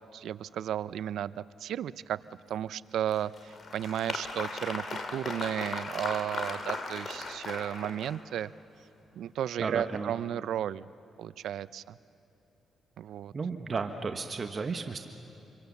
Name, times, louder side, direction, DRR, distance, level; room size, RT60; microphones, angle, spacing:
voice 1, 0.1-2.2 2.5-8.5 9.1-10.9 11.2-12.0 13.0-13.3, right 10 dB, 80° right, 18 dB, 0.5 m, -34 dB
Applause, 3.1-8.4, left 3 dB, 50° left, 2.4 m, -37 dB
voice 2, 9.6-10.1 13.3-15.1, right 4 dB, 40° right, 6 dB, 1.2 m, -33 dB
27.0 x 22.5 x 7.1 m, 3.0 s
cardioid pair, 80°, 0 cm